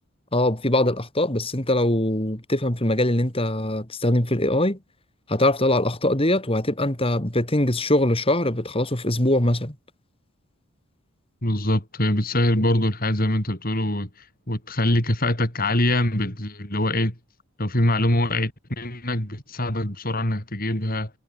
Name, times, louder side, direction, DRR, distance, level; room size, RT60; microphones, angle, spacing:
voice 1, 0.3-4.8 5.3-9.7, left 1 dB, 25° left, 3.4 m, -22 dB
voice 2, 11.4-17.2 17.6-21.1, left 1 dB, 40° left, 5.8 m, -24 dB
head